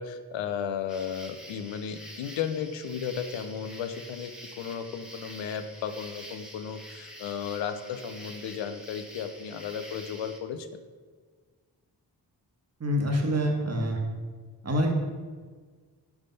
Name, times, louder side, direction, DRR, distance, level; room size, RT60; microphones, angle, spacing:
voice 1, 0.0-10.7, left 7 dB, 90° left, 9 dB, 0.5 m, -34 dB
sound 1, 0.9-10.4, equal, ahead, 1.1 m, -46 dB
voice 2, 12.8-14.0 14.6-14.9, equal, 35° right, 1 dB, 1.2 m, -26 dB
6.0 x 3.3 x 5.3 m, 1.5 s
supercardioid pair, 45°, 44 cm